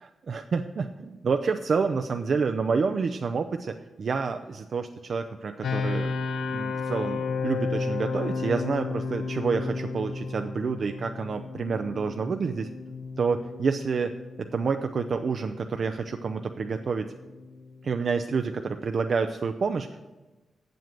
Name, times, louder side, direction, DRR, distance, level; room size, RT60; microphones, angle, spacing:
voice 1, 0.3-6.1 6.5-12.7 13.2-14.1 14.4-17.1 17.8-20.0, right 5 dB, 60° right, 6 dB, 0.5 m, -28 dB
sound 1, 5.6-18.5, left 4 dB, 80° left, 0.9 m, -33 dB
7.8 x 7.7 x 7.5 m, 1.1 s
supercardioid pair, 45°, 0 cm